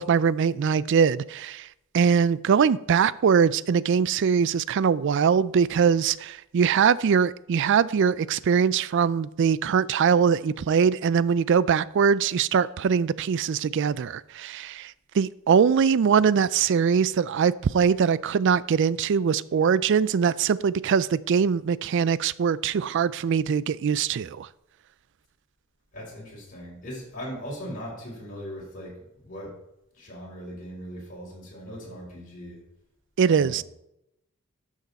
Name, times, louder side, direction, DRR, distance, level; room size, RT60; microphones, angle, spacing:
voice 1, 0.0-1.7 1.9-24.5 33.2-33.6, right 6 dB, 55° right, 19 dB, 0.3 m, -22 dB
voice 2, 25.9-29.6 29.9-32.6 33.2-33.6, equal, 40° left, -4 dB, 4.0 m, -39 dB
12.5 x 6.4 x 4.1 m, 0.84 s
head